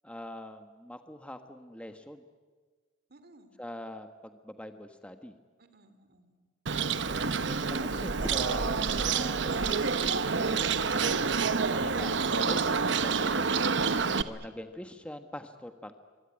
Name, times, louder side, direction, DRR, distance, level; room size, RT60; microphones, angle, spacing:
voice 1, 0.0-2.2 3.6-5.3 7.0-10.7 11.7-13.3 14.0-15.9, left 1 dB, 5° left, 7 dB, 1.2 m, -43 dB
voice 2, 3.1-3.5 5.6-6.5 13.7-14.5, right 3 dB, 50° right, 10 dB, 2.7 m, -53 dB
Bird, 6.7-14.2, right 5 dB, 65° right, 0.9 m, -28 dB
25.5 x 24.0 x 9.8 m, 1.4 s
head